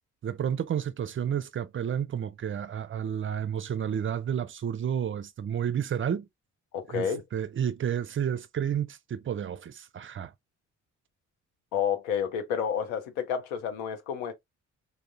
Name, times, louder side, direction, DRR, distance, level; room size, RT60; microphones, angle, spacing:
voice 1, 0.2-6.3 6.9-10.3, right 8 dB, 35° right, 0.4 m, -31 dB
voice 2, 6.7-7.2 11.7-14.3, left 7 dB, 85° left, 0.7 m, -30 dB
3.4 x 2.1 x 2.6 m
hypercardioid pair, 40°, 38 cm